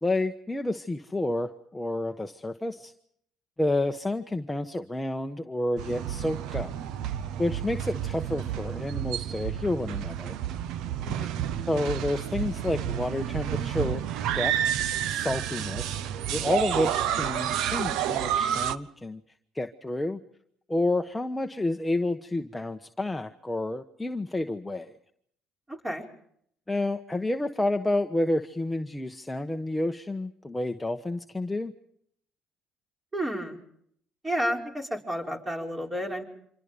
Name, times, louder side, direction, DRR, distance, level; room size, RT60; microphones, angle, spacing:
voice 1, 0.0-2.9 3.6-6.7 7.4-10.3 11.7-14.0 14.3-14.7 15.1-16.0 16.3-19.2 19.5-20.2 20.7-24.9 26.7-31.7, left 2 dB, 10° left, 6 dB, 1.1 m, -29 dB
sound 1, 5.8-18.8, right 10 dB, 75° right, 0.9 m, -30 dB
voice 2, 11.0-11.3 25.7-26.0 33.1-33.6 34.2-36.2, equal, 15° right, 2 dB, 5.3 m, -31 dB
27.0 x 26.0 x 5.2 m, 0.69 s
supercardioid pair, 90°, 0 cm